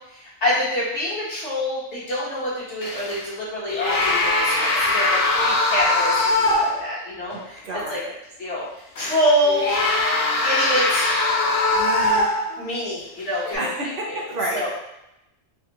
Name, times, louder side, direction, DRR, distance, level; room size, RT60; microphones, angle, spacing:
voice 1, 0.1-8.0 8.4-8.7 9.0-9.6 10.4-11.1 11.7-12.3 12.6-14.2 14.5-14.7, equal, 80° left, -8 dB, 1.5 m, -26 dB
sound 1, 2.8-3.3 3.7-6.9 7.3-7.4 9.0-12.7 13.3-13.6, left 2 dB, 60° left, 0.7 m, -21 dB
voice 2, 7.3-8.2 13.6-14.7, right 1 dB, 60° right, -1 dB, 0.7 m, -30 dB
3.5 x 2.2 x 2.8 m, 0.86 s
omnidirectional pair, 1.2 m